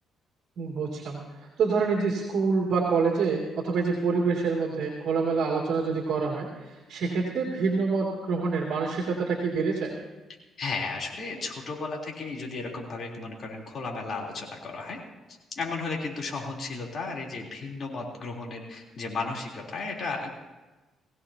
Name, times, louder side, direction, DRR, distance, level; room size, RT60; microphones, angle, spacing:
voice 1, 0.6-9.9, right 4 dB, 70° right, -2 dB, 2.7 m, -27 dB
voice 2, 10.6-15.0 15.5-20.3, left 3 dB, 50° left, -1 dB, 3.7 m, -34 dB
20.5 x 16.5 x 2.9 m, 1.1 s
cardioid pair, 90°, 0 cm